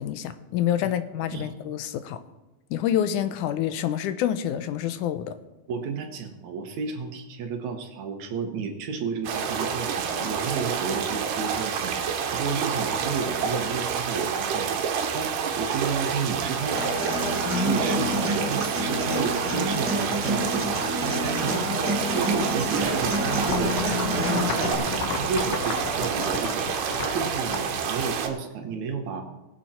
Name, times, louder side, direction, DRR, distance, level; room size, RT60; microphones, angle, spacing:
voice 1, 0.0-2.2 2.7-5.3, left 10 dB, 85° left, 11 dB, 2.1 m, -27 dB
voice 2, 5.7-11.9 12.3-14.7 15.1-16.8 17.6-20.7 21.0-23.8 24.2-26.6 27.1-29.3, right 5 dB, 70° right, 5 dB, 2.4 m, -32 dB
sound 1, 9.2-28.3, right 7 dB, 90° right, 2.6 m, -28 dB
Human voice / Acoustic guitar, 16.7-24.7, left 1 dB, 5° right, 1.2 m, -28 dB
sound 2, 22.3-28.5, left 5 dB, 65° left, 2.0 m, -34 dB
20.0 x 7.4 x 4.3 m, 1.0 s
omnidirectional pair, 3.6 m